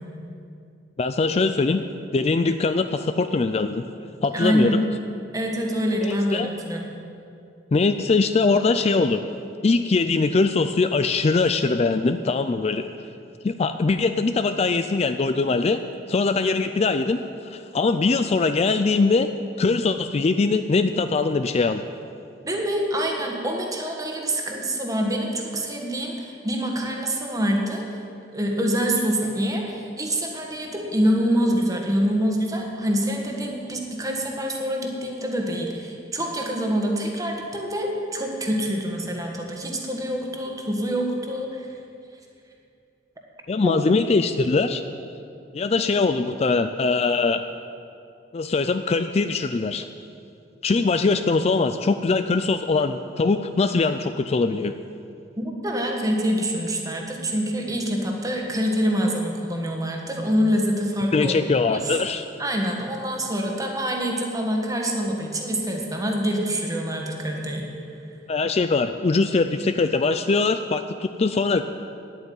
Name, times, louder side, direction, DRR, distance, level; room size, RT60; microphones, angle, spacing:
voice 1, 1.0-1.8 2.1-3.8 4.2-4.8 6.0-6.5 7.7-9.2 9.6-12.9 13.4-15.8 16.1-19.3 19.6-21.8 43.5-44.8 45.5-47.4 48.3-49.9 50.6-54.7 61.1-62.2 68.3-71.6, left 3 dB, 35° left, 9 dB, 0.4 m, -22 dB
voice 2, 4.3-4.8 5.3-6.8 22.4-28.0 28.3-41.7 43.6-43.7 55.4-61.4 61.7-62.0 62.4-67.7, equal, 20° right, 1 dB, 1.6 m, -25 dB
9.7 x 9.1 x 9.4 m, 2.6 s
head